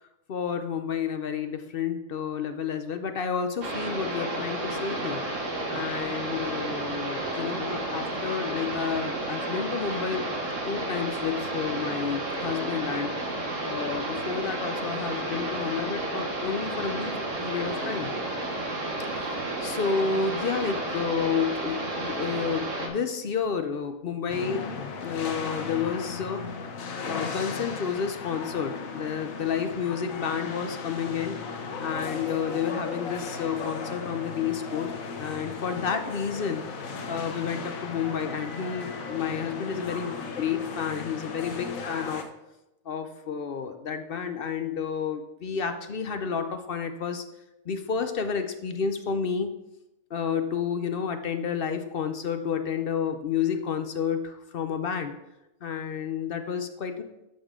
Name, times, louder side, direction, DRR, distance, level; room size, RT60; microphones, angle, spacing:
voice 1, 0.3-5.2 5.7-10.3 10.6-13.1 13.6-18.1 19.1-24.7 25.0-26.4 27.0-42.2 42.9-47.2 47.7-49.5 50.1-55.1 55.6-57.0, left 6 dB, 55° left, 8 dB, 0.7 m, -30 dB
sound 1, 3.6-22.9, right 2 dB, 65° right, 1.6 m, -31 dB
sound 2, 24.3-42.2, left 4 dB, 85° left, 1.3 m, -36 dB
12.5 x 5.1 x 3.7 m, 0.93 s
omnidirectional pair, 1.4 m